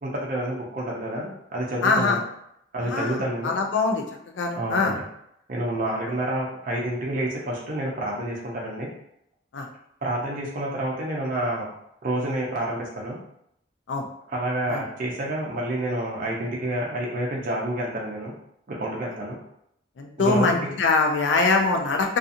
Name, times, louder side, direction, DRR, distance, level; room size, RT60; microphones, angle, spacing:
voice 1, 0.0-2.2 2.7-3.6 4.6-4.9 5.5-8.9 10.0-11.7 12.0-13.2 14.3-18.3 18.7-19.4 20.2-20.6, right 1 dB, 45° right, -3 dB, 0.5 m, -28 dB
voice 2, 1.8-2.2 2.8-4.0 4.4-4.9 9.5-9.7 13.9-14.1 14.7-14.8 20.0-22.2, left 3 dB, 80° left, 3 dB, 0.4 m, -23 dB
2.7 x 2.4 x 2.5 m, 0.74 s
head